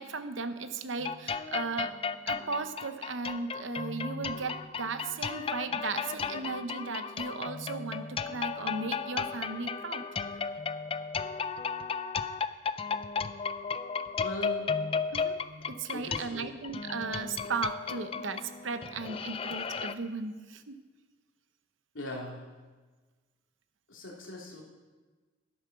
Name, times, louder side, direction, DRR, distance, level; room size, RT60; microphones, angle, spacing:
voice 1, 0.0-1.9 2.3-10.0 15.1-15.4 15.7-20.8, right 4 dB, 70° right, 10 dB, 0.8 m, -36 dB
sound 1, 1.0-19.9, left 5 dB, 25° left, 0.3 m, -34 dB
voice 2, 14.2-14.7 15.9-16.5 21.9-22.5 23.9-24.6, equal, 75° left, -1 dB, 2.4 m, -40 dB
12.0 x 8.3 x 5.7 m, 1.3 s
head